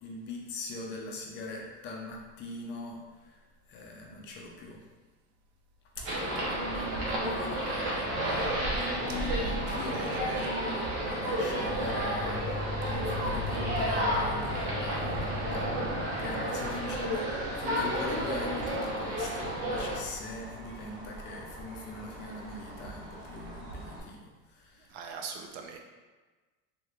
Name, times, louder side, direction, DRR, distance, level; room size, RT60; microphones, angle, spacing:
voice 1, 0.0-4.8 6.0-12.5 12.8-15.7 16.2-25.1, left 2 dB, 35° left, -1 dB, 0.5 m, -42 dB
sound 1, 6.0-24.0, right 2 dB, 35° right, 0.7 m, -43 dB
sound 2, 6.0-20.0, equal, 65° right, 1.0 m, -32 dB
voice 2, 9.2-9.5 9.9-10.5 16.6-16.7 24.9-25.8, right 5 dB, 85° right, 3 dB, 0.6 m, -41 dB
sound 3, 11.7-22.6, left 3 dB, 85° left, 0.5 m, -40 dB
3.3 x 3.1 x 2.4 m, 1.3 s
cardioid pair, 165°, 31 cm